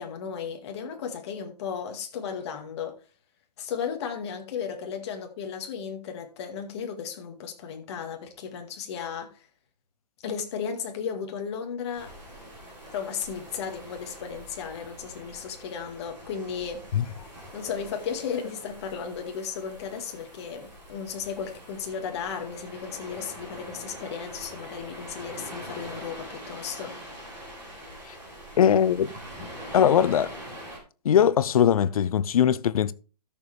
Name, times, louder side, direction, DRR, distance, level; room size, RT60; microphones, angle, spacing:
voice 1, 0.0-3.0 3.6-9.4 10.2-12.1 12.9-16.8 17.5-27.0, left 7 dB, 40° left, 2.1 m, -35 dB
sound 1, 12.0-30.8, equal, 10° right, 4.2 m, -44 dB
voice 2, 28.6-29.1 29.4-30.3 31.0-32.9, left 9 dB, 60° left, 0.7 m, -21 dB
13.0 x 6.8 x 3.4 m
hypercardioid pair, 155°, 21 cm